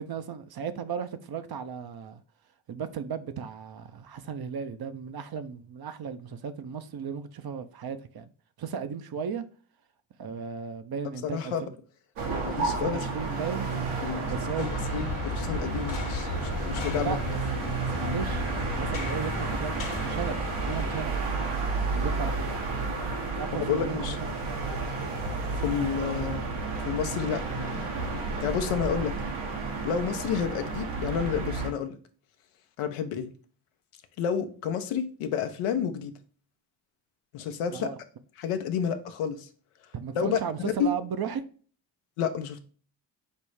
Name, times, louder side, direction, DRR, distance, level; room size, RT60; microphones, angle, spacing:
voice 1, 0.0-2.2 2.7-8.3 8.6-9.4 10.2-11.7 12.7-13.7 14.2-14.7 16.9-21.2 22.0-22.6 23.3-24.2 37.7-37.9 39.9-41.5, right 7 dB, 50° right, 0.7 m, -35 dB
voice 2, 11.2-11.7 12.4-13.0 13.3-13.4 14.0-14.3 14.6-17.2 23.5-24.2 25.5-26.5 26.9-27.9 28.4-29.2 29.8-32.0 32.8-33.3 34.2-36.1 37.3-37.9 38.4-39.5 40.1-40.9 42.2-42.6, left 7 dB, 80° left, 0.7 m, -30 dB
sound 1, 12.2-31.7, right 3 dB, 75° right, 1.4 m, -31 dB
sound 2, 14.6-21.0, left 3 dB, 60° left, 1.2 m, -35 dB
5.3 x 2.0 x 4.6 m
hypercardioid pair, 40°, 50 cm